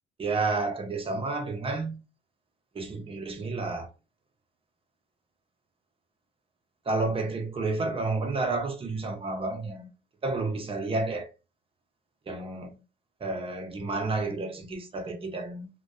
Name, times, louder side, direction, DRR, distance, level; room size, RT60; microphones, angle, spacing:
voice 1, 0.2-2.0 2.7-3.9 6.9-9.9 10.2-11.3 12.3-12.8 13.2-15.7, right 3 dB, 30° right, 0.6 m, -30 dB
2.5 x 2.2 x 2.2 m
cardioid pair, 90°, 20 cm